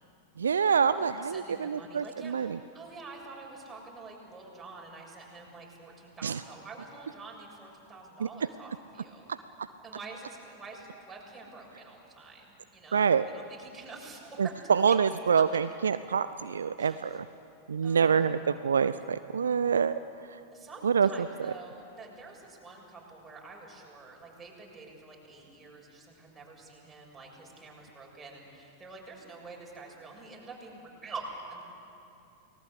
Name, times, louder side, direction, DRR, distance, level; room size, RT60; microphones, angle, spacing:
voice 1, 0.4-2.6 6.2-6.4 12.9-13.2 14.4-17.2 17.7-19.9 20.8-21.1, right 6 dB, 70° right, 13 dB, 0.5 m, -26 dB
voice 2, 1.0-9.3 9.8-15.0 16.8-17.1 17.8-18.3 20.5-31.6, right 3 dB, 15° right, -2 dB, 7.0 m, -47 dB
29.5 x 19.5 x 8.3 m, 2.8 s
figure-of-eight pair, 90°, 0 cm